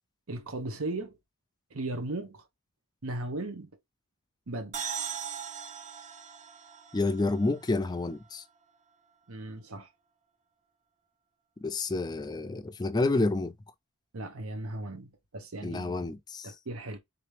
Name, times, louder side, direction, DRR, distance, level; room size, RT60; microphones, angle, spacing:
voice 1, 0.3-1.2 1.7-2.4 3.0-3.7 4.5-4.9 9.3-9.9 14.1-16.0 16.4-17.0, right 2 dB, 70° right, 0.9 m, -37 dB
sound 1, 4.7-8.3, right 8 dB, 35° right, 0.7 m, -39 dB
voice 2, 6.9-8.4 11.6-13.5 15.6-16.6, left 2 dB, 20° left, 0.4 m, -29 dB
3.8 x 3.0 x 3.2 m
head